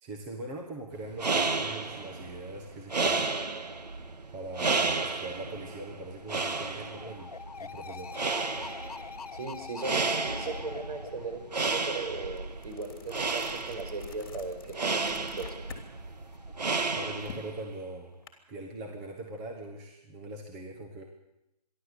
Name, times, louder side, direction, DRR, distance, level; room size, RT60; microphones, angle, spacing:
voice 1, 0.0-3.3 4.3-7.3 7.6-8.2 16.9-18.2 18.5-21.0, right 2 dB, 15° right, 1 dB, 1.5 m, -41 dB
sound 1, 1.0-17.6, right 3 dB, 90° right, 1.9 m, -32 dB
sound 2, 1.9-2.3 5.8-12.3 15.8-16.6, left 6 dB, 70° left, 1.0 m, -45 dB
voice 2, 9.3-15.7, right 3 dB, 65° right, 4 dB, 5.5 m, -38 dB
sound 3, 11.6-11.7 12.1-15.9 16.2-18.3, left 6 dB, 35° left, 3.2 m, -48 dB
28.0 x 12.0 x 8.3 m, 0.88 s
hypercardioid pair, 170°, 21 cm